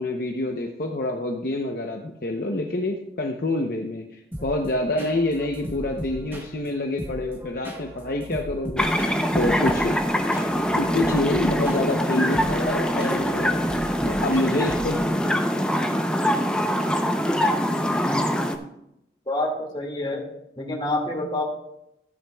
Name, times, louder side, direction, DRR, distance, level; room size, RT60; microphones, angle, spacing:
voice 1, 0.0-8.9 9.3-10.0 10.8-13.6 14.0-15.4, left 2 dB, 55° left, 2 dB, 0.8 m, -27 dB
sound 1, 4.3-15.2, equal, 10° right, 1.3 m, -38 dB
sound 2, 8.8-18.6, equal, 5° left, 0.6 m, -23 dB
voice 2, 19.3-20.3 20.6-21.4, left 1 dB, 25° left, -1 dB, 2.1 m, -27 dB
14.5 x 9.3 x 2.3 m, 0.83 s
head